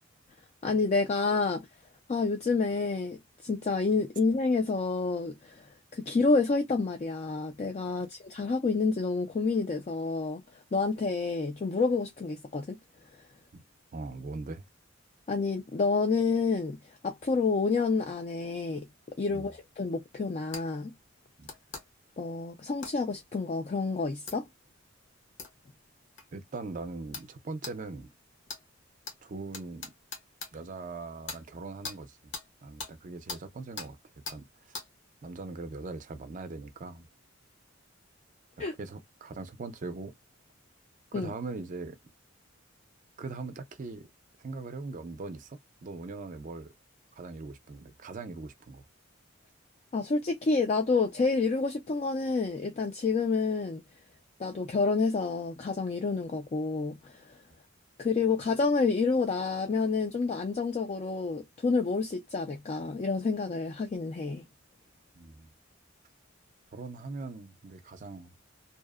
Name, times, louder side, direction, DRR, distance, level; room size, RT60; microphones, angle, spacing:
voice 1, 0.6-1.7 2.1-5.7 5.9-12.8 15.3-18.9 19.2-20.9 22.2-24.5 38.6-38.7 41.1-41.3 49.9-53.8 54.4-57.4 58.0-64.5, left 4 dB, 35° left, 0.3 m, -29 dB
voice 2, 13.9-14.6 19.3-19.5 21.4-21.5 26.3-28.1 29.2-29.9 30.5-32.3 32.6-34.0 34.3-34.5 35.2-37.1 38.8-40.1 41.1-42.0 43.2-44.1 44.4-46.7 47.1-48.8 65.2-65.5 66.7-68.3, right 3 dB, 40° right, 0.5 m, -40 dB
sound 1, 20.5-20.7 21.5-21.8 22.8-23.0 24.3-24.4 25.4-25.5 26.2-26.3 27.1-27.3 27.6-27.8 28.5-28.6 29.1-29.2 29.5-30.5 31.3-31.4 31.8-32.0 32.3-32.5 32.8-32.9 33.3-33.4 33.8-33.9 34.3-34.4 34.7-34.9, left 4 dB, 65° left, 1.0 m, -39 dB
2.7 x 2.0 x 2.3 m
head